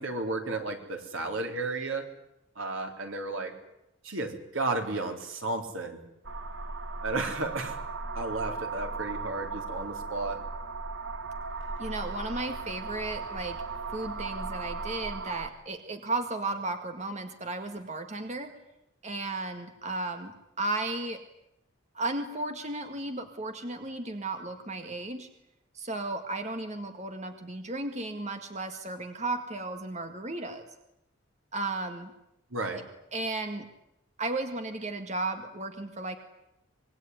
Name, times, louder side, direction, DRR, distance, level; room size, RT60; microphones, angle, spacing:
voice 1, 0.0-2.1 2.6-3.5 4.0-6.0 7.0-7.8 8.1-10.4 32.5-32.8, right 2 dB, 80° right, 4 dB, 4.0 m, -33 dB
sound 1, 6.2-15.5, right 4 dB, 65° right, 1.6 m, -37 dB
voice 2, 11.8-13.6 13.9-18.5 19.0-21.2 21.9-25.3 25.7-30.6 31.5-32.1 32.7-32.8 33.1-33.7 34.2-36.2, right 2 dB, 35° right, 6 dB, 1.9 m, -34 dB
25.5 x 21.5 x 9.8 m, 0.86 s
head